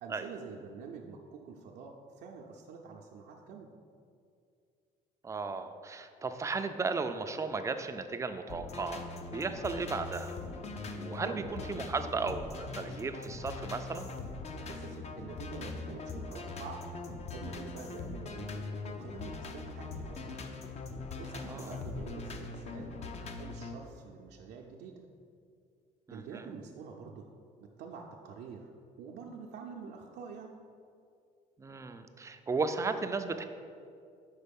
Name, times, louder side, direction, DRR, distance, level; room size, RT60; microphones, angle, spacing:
voice 1, 0.0-3.7 11.1-11.5 14.7-16.8 17.3-18.5 18.8-20.5 21.2-25.0 26.1-27.3 27.6-28.7 29.0-30.5, right 5 dB, 75° right, 0 dB, 0.6 m, -47 dB
voice 2, 5.2-10.4 10.9-14.1 21.5-21.8 26.1-26.6 31.6-33.4, right 4 dB, 20° right, 8 dB, 0.4 m, -35 dB
sound 1, 8.5-23.7, left 3 dB, 40° left, 0.6 m, -41 dB
5.5 x 4.0 x 5.2 m, 2.4 s
cardioid pair, 110°, 17 cm